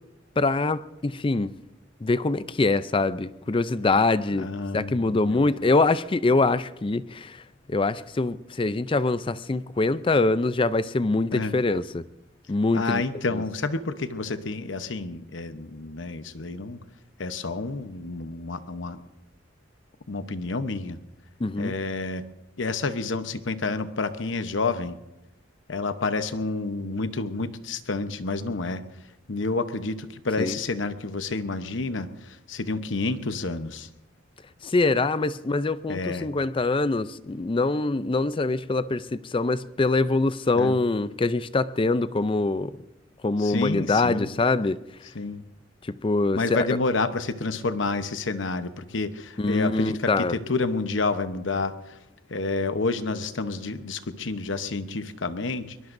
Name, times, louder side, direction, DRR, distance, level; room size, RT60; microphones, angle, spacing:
voice 1, 0.4-1.5 2.0-7.4 7.7-12.0 12.5-13.0 13.3-13.4 21.4-21.7 30.4-30.5 34.6-39.0 39.3-42.7 43.2-44.8 45.9-46.7 49.4-50.4, left 3 dB, 30° left, 0.5 m, -24 dB
voice 2, 4.4-5.5 11.3-11.5 12.7-16.8 17.2-19.0 20.1-21.0 21.6-22.2 22.6-25.0 25.7-28.8 29.3-33.9 35.9-36.3 40.5-40.8 43.4-44.3 45.1-45.5 46.3-52.0 52.3-55.8, left 3 dB, 80° left, 0.9 m, -29 dB
22.0 x 22.0 x 2.6 m
head